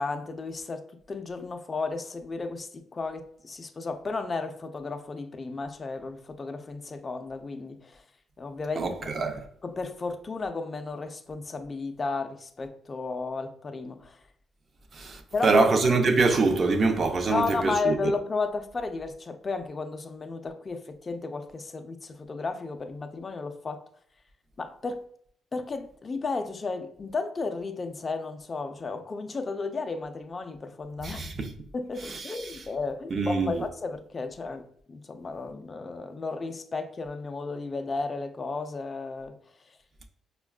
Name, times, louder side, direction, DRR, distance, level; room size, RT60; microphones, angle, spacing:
voice 1, 0.0-8.0 8.4-9.1 9.6-14.2 15.3-15.7 17.3-23.8 24.6-25.0 25.5-31.2 31.7-39.4, left 3 dB, 35° left, 0.4 m, -33 dB
voice 2, 8.8-9.4 14.9-18.0 31.0-31.5 32.3-32.6 33.1-33.6, right 3 dB, 45° right, 0.5 m, -24 dB
4.9 x 2.2 x 2.3 m
cardioid pair, 90°, 0 cm